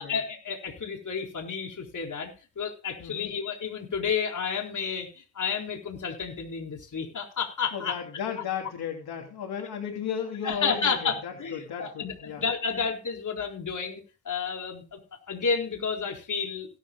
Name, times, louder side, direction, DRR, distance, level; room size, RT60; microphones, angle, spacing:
voice 1, 0.0-8.0 10.4-15.0 15.3-16.7, left 6 dB, 50° left, 2 dB, 4.3 m, -31 dB
voice 2, 3.0-3.3 7.7-12.4, left 7 dB, 75° left, 2 dB, 3.0 m, -35 dB
17.5 x 13.0 x 2.3 m, 0.33 s
cardioid pair, 95°, 39 cm